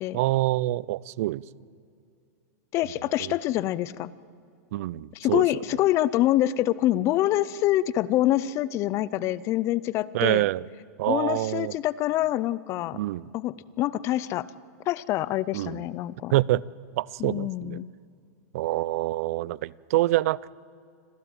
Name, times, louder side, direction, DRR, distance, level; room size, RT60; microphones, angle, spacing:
voice 1, 0.1-1.4 3.2-3.3 4.7-5.6 10.1-10.7 11.0-11.7 12.9-13.3 15.5-15.8 16.3-16.6 17.0-17.8 18.5-20.5, right 17 dB, 60° right, 23 dB, 0.5 m, -26 dB
voice 2, 2.7-4.1 5.1-10.5 11.1-13.0 13.3-14.5 14.9-16.3 17.2-17.9, left 14 dB, 30° left, 20 dB, 0.5 m, -26 dB
26.0 x 15.0 x 9.0 m, 2.4 s
supercardioid pair, 150°, 9 cm